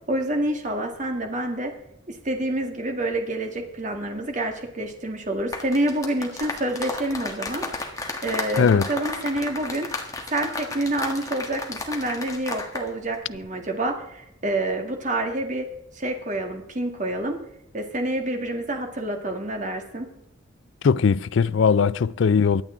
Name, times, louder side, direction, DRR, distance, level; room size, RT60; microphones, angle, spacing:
voice 1, 0.1-1.7 2.1-8.0 8.2-9.9 10.3-15.7 16.0-17.4 17.7-20.1, right 1 dB, 40° right, 1.9 m, -28 dB
sound 1, 5.4-12.9 13.1-13.4, left 2 dB, 15° left, 1.5 m, -33 dB
voice 2, 8.6-8.9 20.8-22.6, left 6 dB, 70° left, 0.4 m, -19 dB
23.5 x 8.8 x 3.8 m
head